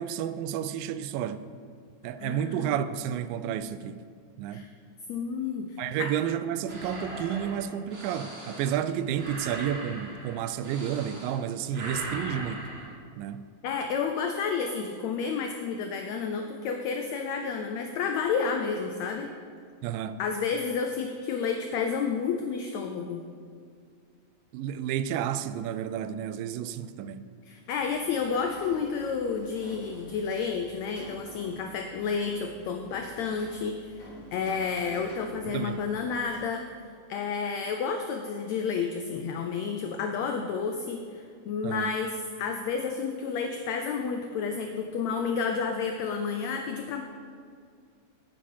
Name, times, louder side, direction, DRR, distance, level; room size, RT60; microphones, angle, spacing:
voice 1, 0.0-1.4 2.0-4.0 4.4-4.6 5.8-12.7 13.2-13.5 19.8-20.2 24.5-27.3 35.5-35.8 41.6-41.9, right 9 dB, 90° right, 2.2 m, -31 dB
voice 2, 2.2-2.7 4.5-4.7 5.1-6.1 13.6-19.3 20.2-23.2 27.5-34.0 34.3-36.7 37.1-47.0, left 5 dB, 90° left, 1.5 m, -31 dB
sound 1, 6.7-11.4 11.7-12.9, right 1 dB, 45° right, 0.8 m, -40 dB
Rain, 27.6-36.8, equal, 50° left, 3.4 m, -50 dB
9.4 x 9.3 x 5.5 m
omnidirectional pair, 3.9 m